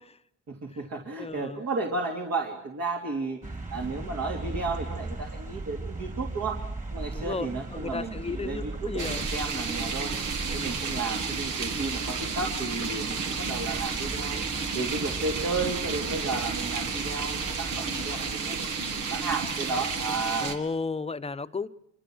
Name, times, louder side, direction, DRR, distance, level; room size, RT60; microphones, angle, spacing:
voice 1, 0.5-3.4 3.7-6.6 6.9-10.1 10.5-14.4 14.7-20.6, right 3 dB, 60° right, 3.1 m, -33 dB
voice 2, 1.2-1.6 7.1-9.3 10.6-10.8 20.4-21.7, left 4 dB, 20° left, 0.9 m, -34 dB
sound 1, 3.4-18.3, right 2 dB, 25° right, 2.8 m, -38 dB
sound 2, 9.0-20.5, right 5 dB, 80° right, 2.4 m, -32 dB
26.0 x 25.5 x 6.3 m
cardioid pair, 90°, 30 cm